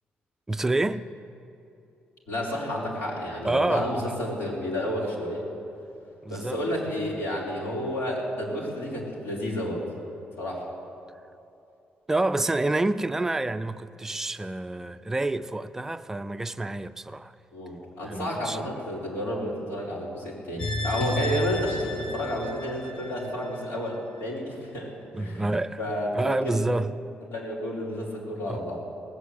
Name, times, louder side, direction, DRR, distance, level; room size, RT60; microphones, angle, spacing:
voice 1, 0.5-1.1 3.4-4.1 6.2-6.6 12.1-17.3 18.0-18.6 25.1-25.8 26.2-26.9 28.5-28.6, right 2 dB, 10° right, 0.4 m, -28 dB
voice 2, 2.3-5.5 6.3-9.8 10.4-10.7 17.5-24.9 25.2-26.5 27.3-28.8, equal, 90° left, 3.9 m, -31 dB
sound 1, 20.6-23.8 24.2-24.3, left 1 dB, 25° left, 0.9 m, -32 dB
18.0 x 8.2 x 8.1 m
cardioid pair, 155°, 4 cm